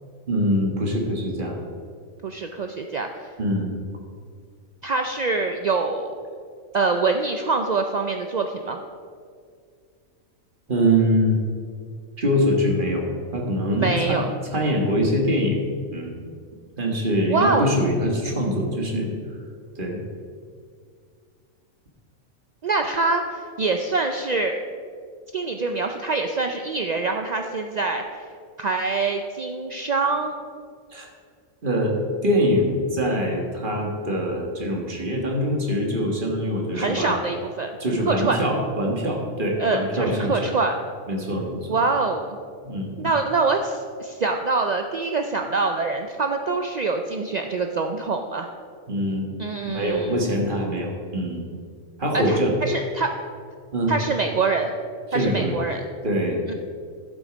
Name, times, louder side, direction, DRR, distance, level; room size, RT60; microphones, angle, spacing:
voice 1, 0.3-1.6 3.4-3.7 10.7-11.4 12.2-15.6 15.9-16.2 16.8-19.1 19.8-20.0 30.9-31.1 31.6-32.0 32.2-37.1 37.8-40.5 41.1-41.7 42.6-43.0 48.9-49.3 49.7-51.4 52.0-52.5 53.7-53.9 55.1-55.6 56.0-56.4, equal, 40° right, 0 dB, 1.7 m, -23 dB
voice 2, 2.2-3.3 4.8-6.1 6.7-8.8 13.8-14.3 17.3-17.7 22.6-24.6 25.3-28.0 28.6-30.3 36.7-37.7 38.1-38.4 39.6-40.8 41.7-42.4 43.0-48.5 49.4-50.2 52.1-53.1 53.9-54.7 55.1-55.8 56.5-56.6, right 3 dB, 65° right, 5 dB, 0.4 m, -24 dB
11.5 x 7.7 x 5.1 m, 2.1 s
omnidirectional pair, 1.4 m